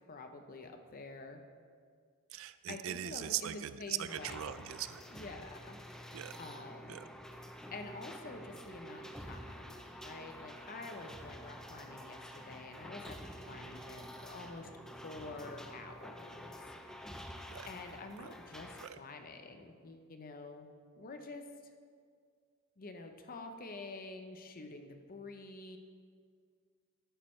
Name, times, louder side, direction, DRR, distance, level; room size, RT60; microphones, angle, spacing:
voice 1, 0.1-1.4 2.7-4.5 5.1-7.0 7.7-9.8 10.0-13.2 13.5-14.7 15.0-16.5 17.7-20.7 21.0-21.4 22.8-25.8, left 3 dB, 40° left, 6 dB, 0.6 m, -48 dB
voice 2, 2.3-5.0 6.1-6.4 6.9-7.0 17.5-17.7 18.2-18.3 18.8-19.0, right 11 dB, 65° right, 14 dB, 0.4 m, -40 dB
sound 1, 4.1-18.9, equal, 5° left, 0.5 m, -49 dB
11.5 x 8.9 x 3.2 m, 2.1 s
head